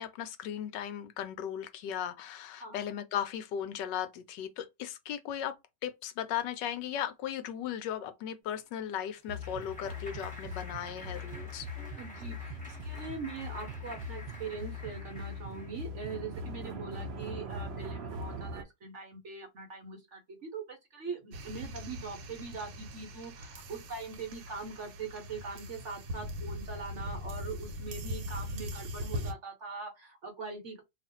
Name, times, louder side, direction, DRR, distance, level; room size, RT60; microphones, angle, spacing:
voice 1, 0.0-5.5 5.8-11.7, left 10 dB, 75° left, 1.2 m, -37 dB
Clapping, 8.6-15.8, left 2 dB, 5° left, 0.9 m, -50 dB
sound 1, 9.3-18.6, left 1 dB, 90° right, 0.5 m, -41 dB
voice 2, 12.0-30.8, right 4 dB, 50° right, 1.0 m, -42 dB
sound 2, 21.3-29.3, equal, 75° right, 1.3 m, -40 dB
2.9 x 2.4 x 4.1 m
omnidirectional pair, 2.0 m